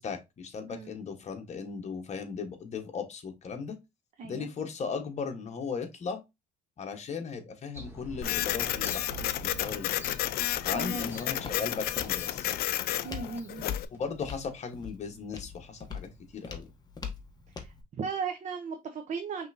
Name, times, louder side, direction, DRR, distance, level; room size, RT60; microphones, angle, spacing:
voice 1, 0.0-3.7 4.2-6.2 6.8-10.1 10.6-12.5 13.9-16.7, left 5 dB, 40° left, 1.2 m, -37 dB
voice 2, 4.2-4.5 10.7-11.1 13.0-13.7 17.6-19.5, right 5 dB, 45° right, 0.8 m, -36 dB
sound 1, 7.7-13.6 13.9-14.0, equal, 10° right, 2.0 m, -46 dB
Printer, 8.2-13.9, left 13 dB, 65° left, 0.4 m, -31 dB
Walk footsteps, 9.8-17.8, left 6 dB, 25° left, 1.1 m, -44 dB
5.4 x 3.4 x 2.6 m
cardioid pair, 110°, 17 cm